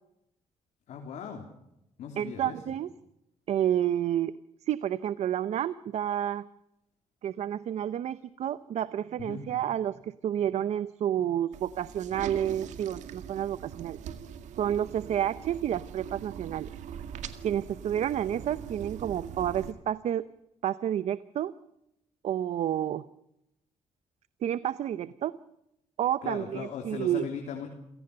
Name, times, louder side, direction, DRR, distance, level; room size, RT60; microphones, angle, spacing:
voice 1, 0.9-1.5 2.0-2.6 9.2-9.6 26.2-27.7, left 7 dB, 80° left, 2 dB, 3.5 m, -38 dB
voice 2, 2.2-2.9 3.5-4.3 4.7-6.5 7.2-14.0 14.6-16.7 17.4-20.3 20.6-21.5 22.2-23.1 24.4-25.4 26.0-27.2, right 10 dB, 70° right, 15 dB, 0.7 m, -30 dB
sound 1, 11.5-19.7, right 8 dB, 85° right, 2.0 m, -42 dB
28.0 x 17.5 x 6.8 m, 0.85 s
cardioid pair, 110°, 12 cm